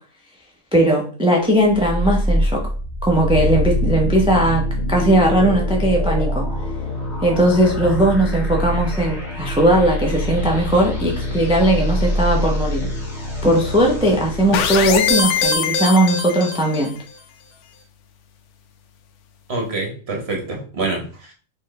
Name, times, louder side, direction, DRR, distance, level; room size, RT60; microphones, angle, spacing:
voice 1, 0.7-2.6 3.0-4.6 4.9-6.5 7.2-12.8 13.4-16.9, right 1 dB, 5° right, -1 dB, 0.5 m, -18 dB
sound 1, 1.7-14.9, left 1 dB, 30° left, 1.8 m, -24 dB
sound 2, 14.5-17.0, left 5 dB, 80° left, 1.1 m, -21 dB
voice 2, 19.5-21.3, right 3 dB, 45° right, 1 dB, 1.4 m, -26 dB
4.4 x 3.1 x 3.2 m, 0.39 s
omnidirectional pair, 1.5 m